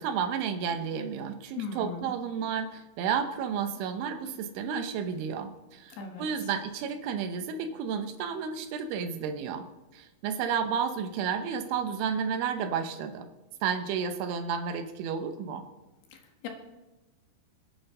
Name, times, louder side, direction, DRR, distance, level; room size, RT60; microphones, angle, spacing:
voice 1, 0.0-9.7 9.9-13.3 13.6-15.7, right 7 dB, 85° right, 7 dB, 3.4 m, -32 dB
voice 2, 1.6-2.1 6.0-6.3 16.1-16.2 16.4-16.5, left 5 dB, 65° left, 3 dB, 3.2 m, -37 dB
26.0 x 10.5 x 3.9 m, 1.1 s
omnidirectional pair, 5.3 m